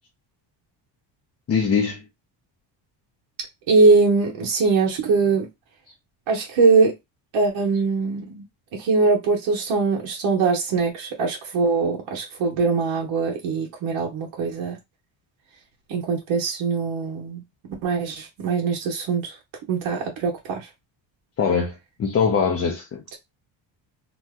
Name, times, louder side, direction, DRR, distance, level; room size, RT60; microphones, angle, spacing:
voice 1, 1.5-2.0 21.4-23.2, left 6 dB, 30° left, 0.6 m, -22 dB
voice 2, 3.7-5.5 6.3-6.9 7.3-8.4 8.8-14.8 15.9-17.4 17.8-19.3 19.7-20.6, right 4 dB, 80° right, 1.2 m, -21 dB
2.9 x 2.1 x 3.5 m
cardioid pair, 140°, 46 cm